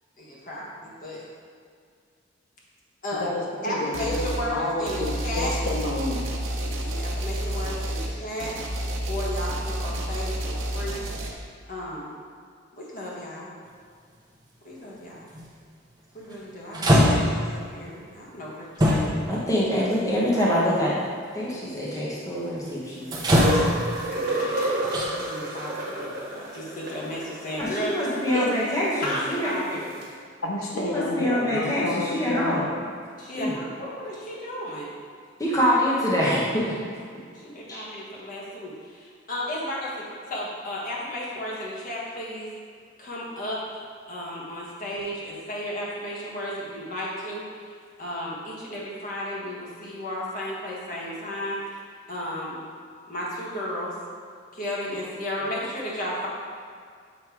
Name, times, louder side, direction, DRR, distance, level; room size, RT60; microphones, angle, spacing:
voice 1, 0.2-1.2 3.0-3.3 3.6-5.5 6.6-8.5 9.1-11.0 11.7-12.1 12.8-13.5 14.6-15.3 16.1-19.4 24.2-24.8 25.1-27.9 28.3-28.5 29.0-29.9 33.2-35.0 37.3-42.5 43.0-47.4 48.0-51.8 52.1-52.6 53.1-54.0 54.5-56.3, left 1 dB, 45° left, -5 dB, 1.3 m, -34 dB
voice 2, 3.2-6.2 30.4-32.7, left 2 dB, 90° left, -2 dB, 0.9 m, -30 dB
sound 1, 3.9-4.5 4.9-11.3, right 1 dB, 75° right, 0.8 m, -30 dB
sound 2, 15.3-15.5 16.3-16.4 16.7-17.5 18.8-19.4 20.3-20.4 23.1-24.0 24.8-25.0, equal, 20° right, 0.8 m, -20 dB
voice 3, 19.3-20.9 21.3-23.4 27.6-29.5 30.7-32.7 33.4-33.5 35.4-36.7 37.1-37.2 37.7-37.8, equal, 15° left, -7 dB, 1.1 m, -25 dB
sound 3, 23.1-29.2 30.0-30.1, right 1 dB, 50° right, 1.4 m, -30 dB
7.3 x 3.2 x 4.7 m, 2.2 s
head